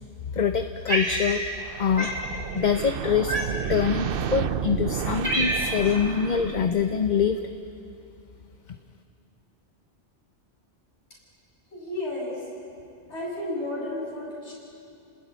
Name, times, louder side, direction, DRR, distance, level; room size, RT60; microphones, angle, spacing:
voice 1, 0.3-1.4 1.8-2.1 2.5-3.4 3.7-7.4, left 7 dB, 45° left, 7 dB, 0.9 m, -24 dB
Cat, 0.9-1.7 2.0-2.2 3.3-3.8 4.5-4.6 4.9-5.9, right 1 dB, 85° right, 4.0 m, -27 dB
sound 1, 1.6-7.0, right 7 dB, 55° right, 0.9 m, -31 dB
voice 2, 11.7-12.5 13.1-14.5, left 1 dB, 70° left, -4 dB, 7.7 m, -32 dB
30.0 x 20.0 x 9.4 m, 2.6 s
omnidirectional pair, 1.2 m